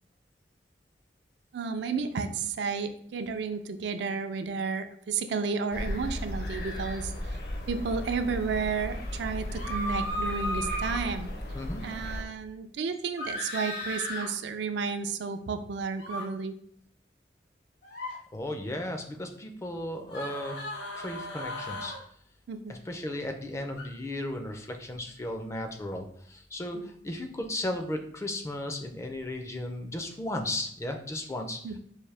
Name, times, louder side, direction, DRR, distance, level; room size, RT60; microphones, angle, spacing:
voice 1, 1.5-7.4 7.7-11.3 11.8-16.5 22.5-22.7 26.7-26.9 31.6-31.8, right 5 dB, 75° right, 9 dB, 0.4 m, -32 dB
sound 1, 5.7-12.2, left 1 dB, 60° left, 0.8 m, -36 dB
sound 2, 9.5-11.0 13.2-14.3 16.0-16.2 17.8-18.1 20.1-22.0 23.8-23.9, equal, 75° left, 1.6 m, -35 dB
voice 2, 11.5-11.9 18.3-20.6 20.9-21.9 22.7-31.6, left 1 dB, 15° left, 4 dB, 0.4 m, -35 dB
4.7 x 2.6 x 3.3 m, 0.65 s
head